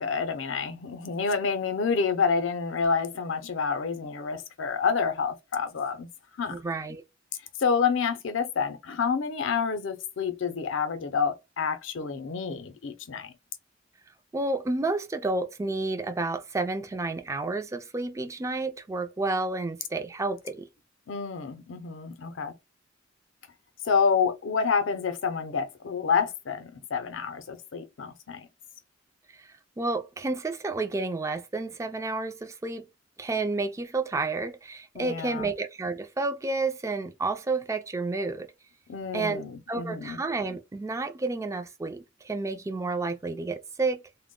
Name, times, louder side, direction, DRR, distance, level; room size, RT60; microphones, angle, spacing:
voice 1, 0.0-6.1 6.4-6.6 7.6-13.3 21.1-22.5 23.8-28.5 34.9-35.5 38.9-40.2, left 5 dB, 75° left, 0.5 m, -28 dB
voice 2, 6.5-7.0 14.3-20.7 29.3-29.5 29.8-32.9 33.2-38.5 39.1-39.4 39.7-44.0, right 3 dB, 15° right, 0.3 m, -30 dB
2.1 x 2.1 x 3.6 m
head